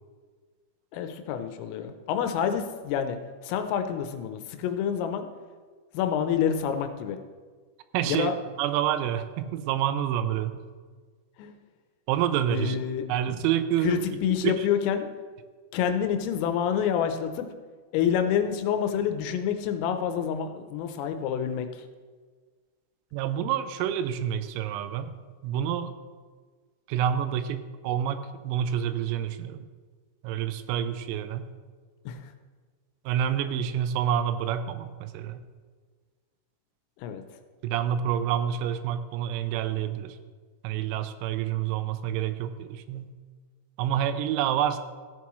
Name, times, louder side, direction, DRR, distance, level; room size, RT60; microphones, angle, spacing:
voice 1, 0.9-3.2 3.4-5.3 5.9-7.2 8.1-8.4 11.4-11.5 12.5-13.1 13.8-15.1 15.7-17.5 17.9-21.9 32.1-32.3 37.0-37.2, left 8 dB, 85° left, 8 dB, 3.3 m, -28 dB
voice 2, 7.9-8.3 8.6-10.6 12.1-12.8 13.1-14.0 14.4-14.5 23.1-25.1 25.4-25.9 26.9-29.7 30.2-31.5 33.1-35.4 37.6-40.2 40.6-43.1 43.8-44.8, right 10 dB, 90° right, 10 dB, 3.4 m, -28 dB
15.5 x 8.3 x 3.1 m, 1.5 s
omnidirectional pair, 6.0 m